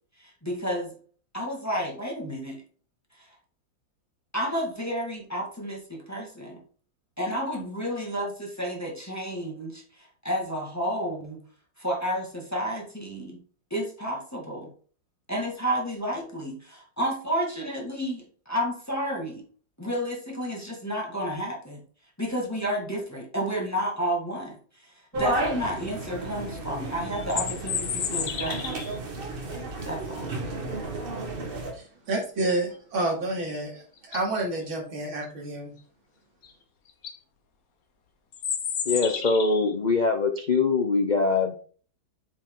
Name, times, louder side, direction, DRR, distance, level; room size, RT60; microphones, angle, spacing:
voice 1, 0.2-0.9 1.3-2.6 3.2-3.3 4.3-6.6 7.2-11.4 11.8-13.4 13.7-14.7 15.3-19.4 19.8-21.8 22.2-28.8 29.8-30.3, equal, 10° left, -1 dB, 1.8 m, -31 dB
sound 1, 25.1-31.7, right 2 dB, 30° right, 1.4 m, -33 dB
sound 2, 27.1-29.0 33.5-33.6 34.0-34.4 36.4-36.5 36.9-37.2 38.3-39.7, left 7 dB, 55° left, 1.3 m, -31 dB
voice 2, 31.7-35.7, right 2 dB, 85° right, -1 dB, 3.4 m, -29 dB
voice 3, 38.9-41.6, left 4 dB, 75° left, 4 dB, 0.4 m, -23 dB
8.0 x 5.5 x 3.8 m, 0.42 s
omnidirectional pair, 2.1 m